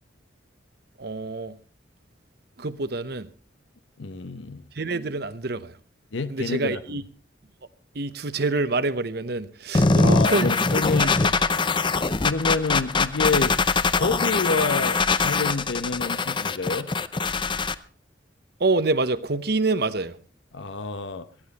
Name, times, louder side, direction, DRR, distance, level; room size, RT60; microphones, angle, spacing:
voice 1, 1.0-1.6 2.6-3.3 4.7-5.8 6.3-7.0 7.9-10.5 11.0-11.3 18.6-20.2, right 3 dB, 55° right, 0.9 m, -26 dB
voice 2, 4.0-4.6 6.1-6.8 10.0-11.6 12.2-13.6 14.0-16.9 20.5-21.3, left 3 dB, 80° left, 0.9 m, -28 dB
sound 1, 9.7-17.7, left 4 dB, 25° left, 0.6 m, -22 dB
18.5 x 13.5 x 4.1 m
head